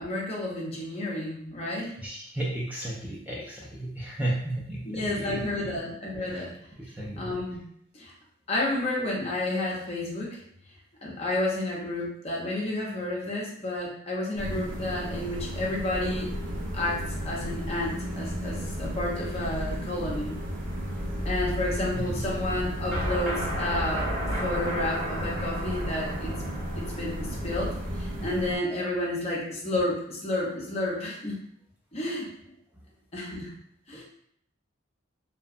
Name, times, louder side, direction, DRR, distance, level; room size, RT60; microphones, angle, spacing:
voice 1, 0.0-2.0 4.8-6.5 7.2-7.6 7.9-8.1 8.5-10.4 11.0-16.3 16.7-20.4 21.2-26.3 26.8-31.4 31.9-32.3 33.1-33.5 33.9-34.0, left 1 dB, 30° left, -3 dB, 0.6 m, -31 dB
voice 2, 2.0-5.7 6.2-6.4 6.8-7.3 22.0-22.3 33.9-34.0, right 1 dB, 10° right, -5 dB, 0.3 m, -34 dB
sound 1, 14.4-28.6, equal, 45° right, 0.6 m, -33 dB
sound 2, 22.9-27.8, equal, 70° right, 1.2 m, -33 dB
2.7 x 2.1 x 2.4 m, 0.69 s
head